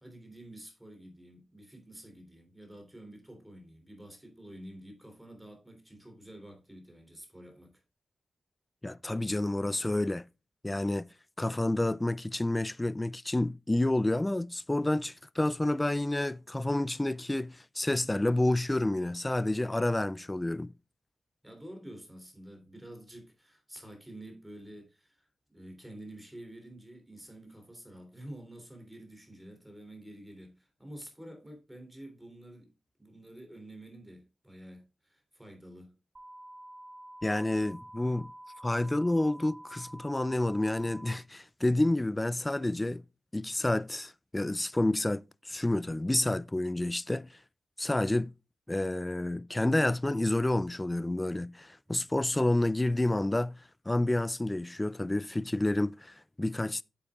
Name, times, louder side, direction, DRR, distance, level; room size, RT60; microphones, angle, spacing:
voice 1, 0.0-7.8 21.4-32.7 33.0-35.9 51.9-52.1, right 1 dB, 10° right, 3.2 m, -49 dB
voice 2, 8.8-10.3 10.6-11.1 11.4-20.7 37.2-38.3 38.6-43.0 43.3-47.4 47.8-48.3 48.7-56.8, left 1 dB, 15° left, 0.3 m, -29 dB
sound 1, 36.2-41.2, right 1 dB, 30° right, 1.2 m, -48 dB
8.4 x 8.0 x 2.4 m
cardioid pair, 85°, 0 cm